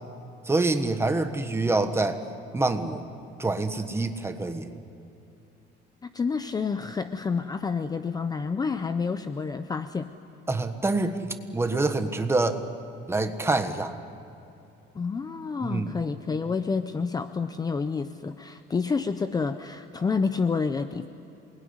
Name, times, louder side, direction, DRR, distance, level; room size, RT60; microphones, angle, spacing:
voice 1, 0.4-2.2 2.5-3.0 3.4-4.7 10.5-11.2 11.5-12.6 13.1-13.9 15.6-15.9, right 2 dB, 10° right, 7 dB, 1.4 m, -26 dB
voice 2, 6.0-10.1 14.9-21.1, left 5 dB, 20° left, 10 dB, 0.6 m, -29 dB
27.5 x 21.0 x 9.7 m, 2.7 s
cardioid pair, 160°, 20 cm